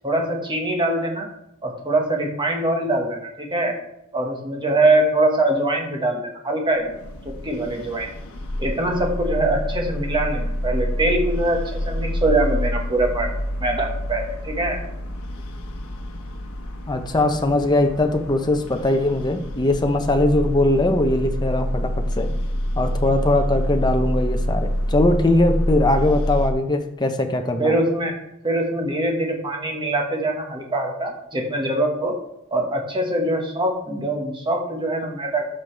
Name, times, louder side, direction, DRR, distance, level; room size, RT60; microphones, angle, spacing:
voice 1, 0.0-1.3 1.6-3.7 4.1-6.9 7.4-8.1 8.6-13.3 13.6-14.8 27.6-28.1 28.4-32.1 32.5-35.5, right 2 dB, 20° right, 1 dB, 1.5 m, -23 dB
sound 1, 6.8-26.5, equal, 80° left, 1.1 m, -27 dB
voice 2, 16.9-22.3 22.8-27.8, left 2 dB, 20° left, 5 dB, 0.7 m, -20 dB
13.0 x 5.3 x 3.4 m, 0.84 s
head